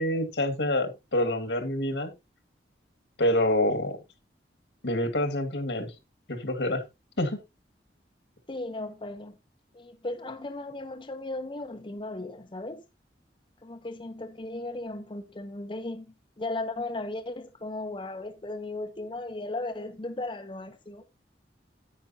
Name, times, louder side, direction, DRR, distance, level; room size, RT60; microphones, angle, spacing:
voice 1, 0.0-2.1 3.2-4.0 4.8-5.9 6.3-6.8 7.2-7.4, left 1 dB, 80° left, 1.9 m, -27 dB
voice 2, 8.5-9.4 9.7-12.8 13.6-16.0 16.4-21.0, left 2 dB, 30° left, 0.7 m, -36 dB
9.6 x 9.1 x 2.7 m
head